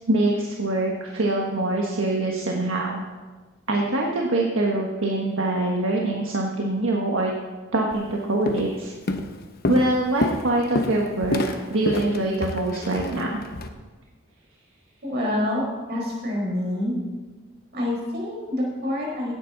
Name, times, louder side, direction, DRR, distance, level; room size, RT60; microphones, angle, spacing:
voice 1, 0.1-3.0 3.7-7.3 7.7-8.9 9.7-13.4, right 2 dB, 75° right, -1 dB, 1.4 m, -24 dB
Walk footsteps, 7.9-8.1 8.5-8.8 9.1-13.7, left 1 dB, 50° left, 0.9 m, -28 dB
voice 2, 15.0-16.9 17.7-19.3, left 1 dB, 55° right, -3 dB, 5.0 m, -27 dB
16.5 x 9.8 x 4.0 m, 1.3 s
head